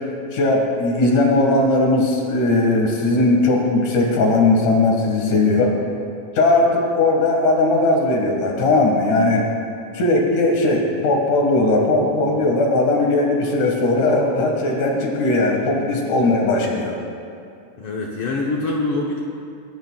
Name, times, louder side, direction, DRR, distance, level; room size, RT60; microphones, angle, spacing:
voice 1, 0.0-5.7 6.3-9.5 9.9-17.0, left 2 dB, 80° left, 0 dB, 3.2 m, -18 dB
voice 2, 5.1-5.6 12.3-12.5 15.5-15.7 17.8-19.2, left 2 dB, 65° left, -2 dB, 1.5 m, -26 dB
28.5 x 10.5 x 2.3 m, 2.5 s
omnidirectional pair, 3.5 m